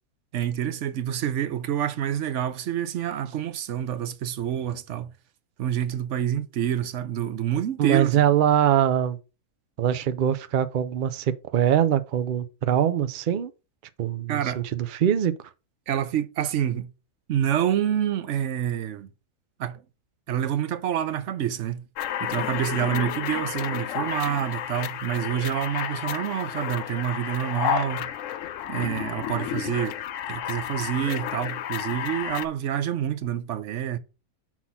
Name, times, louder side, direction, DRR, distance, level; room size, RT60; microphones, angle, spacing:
voice 1, 0.3-5.1 5.6-8.2 14.3-14.7 15.9-16.9 17.3-19.1 19.6-19.8 20.3-21.8 22.2-28.1 28.7-30.0 30.3-34.0, right 10 dB, 65° right, 0.8 m, -27 dB
voice 2, 7.8-9.2 9.8-13.5 14.0-15.3, right 10 dB, 85° right, 0.4 m, -23 dB
sound 1, 22.0-32.5, left 11 dB, 70° left, 0.8 m, -31 dB
6.0 x 4.1 x 5.6 m
omnidirectional pair, 1.6 m